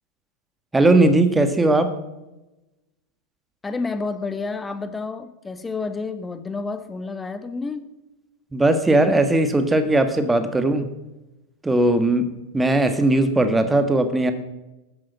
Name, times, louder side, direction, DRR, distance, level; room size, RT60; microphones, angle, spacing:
voice 1, 0.7-1.9 8.5-10.9 11.6-14.3, right 2 dB, 10° right, 9 dB, 1.5 m, -18 dB
voice 2, 3.6-7.8, left 4 dB, 10° left, 11 dB, 1.2 m, -30 dB
13.5 x 10.5 x 6.2 m, 0.98 s
figure-of-eight pair, 90°, 0 cm